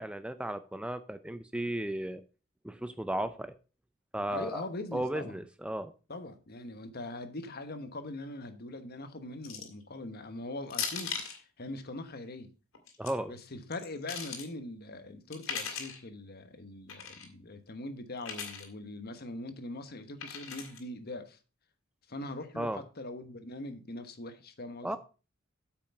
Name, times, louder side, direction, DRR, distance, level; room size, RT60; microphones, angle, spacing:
voice 1, 0.0-2.2 2.6-3.5 4.1-4.7 4.9-5.9 13.0-13.3 22.6-22.8 24.8-25.0, right 1 dB, 5° right, 0.5 m, -35 dB
voice 2, 4.3-5.4 6.1-12.5 13.3-21.4 22.1-25.0, left 2 dB, 50° left, 1.2 m, -42 dB
sound 1, 9.4-9.8 10.7-11.4 12.7-13.1 13.7-14.5 15.3-16.0 16.9-17.3 18.2-18.7 20.2-20.8, left 6 dB, 80° left, 2.4 m, -38 dB
8.5 x 5.9 x 5.8 m
head